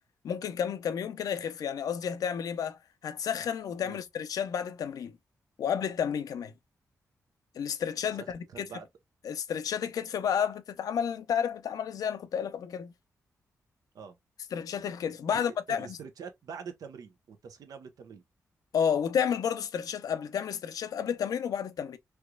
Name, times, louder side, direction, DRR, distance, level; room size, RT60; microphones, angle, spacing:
voice 1, 0.2-5.2 5.6-6.5 7.6-8.7 9.2-12.9 14.5-16.0 18.7-22.0, left 8 dB, 80° left, 0.5 m, -31 dB
voice 2, 8.1-8.9 13.9-14.2 15.3-18.2, right 6 dB, 80° right, 0.8 m, -45 dB
3.3 x 3.0 x 2.3 m
cardioid pair, 75°, 6 cm